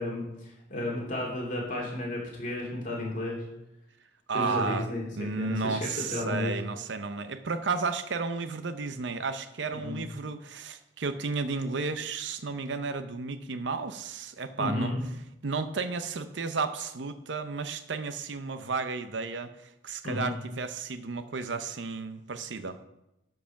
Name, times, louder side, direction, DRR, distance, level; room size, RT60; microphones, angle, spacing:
voice 1, 0.0-3.4 4.3-5.1 5.4-6.5 9.8-10.0 14.6-15.0 20.0-20.4, left 1 dB, 45° left, -3 dB, 2.9 m, -32 dB
voice 2, 4.3-14.9 15.4-22.8, right 4 dB, 75° right, 10 dB, 0.7 m, -33 dB
12.5 x 4.8 x 5.8 m, 0.88 s
head